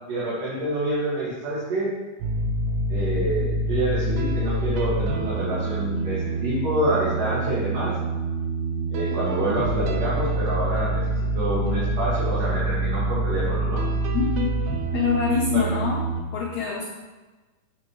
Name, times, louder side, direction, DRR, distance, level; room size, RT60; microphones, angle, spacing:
voice 1, 0.1-1.9 2.9-7.9 8.9-11.0 11.4-13.8 15.5-15.7, right 1 dB, 60° right, -9 dB, 3.5 m, -27 dB
sound 1, 2.2-16.2, right 2 dB, 85° right, 1.6 m, -26 dB
voice 2, 14.1-14.4 14.9-16.0 16.3-16.8, left 6 dB, 70° left, -3 dB, 1.8 m, -25 dB
8.5 x 8.0 x 3.1 m, 1.2 s
omnidirectional pair, 4.4 m